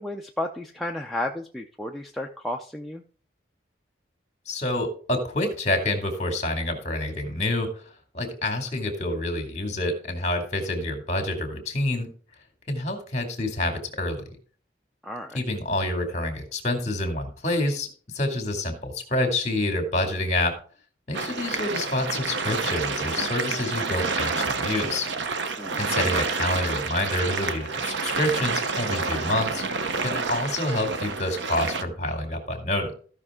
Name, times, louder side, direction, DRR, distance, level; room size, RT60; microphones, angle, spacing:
voice 1, 0.0-3.0 15.0-15.4 25.6-25.8, left 1 dB, ahead, 1 dB, 0.5 m, -32 dB
voice 2, 4.5-7.7 8.1-12.1 12.7-14.4 15.3-17.9 18.1-20.5 21.1-25.1 25.8-29.6 30.0-32.9, left 1 dB, 40° left, 5 dB, 2.3 m, -27 dB
sound 1, 21.1-31.8, right 4 dB, 80° right, 0.9 m, -28 dB
14.5 x 5.9 x 3.7 m, 0.42 s
head